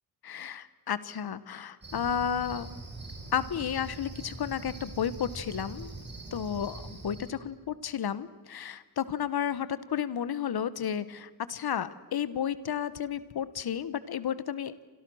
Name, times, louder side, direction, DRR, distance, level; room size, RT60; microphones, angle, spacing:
voice 1, 0.2-2.7 3.3-5.9 6.3-14.8, left 8 dB, 70° left, 16 dB, 1.3 m, -32 dB
Cricket, 1.8-7.3, right 2 dB, 25° right, 5.3 m, -43 dB
30.0 x 26.0 x 6.4 m, 1.3 s
wide cardioid pair, 165°, 39 cm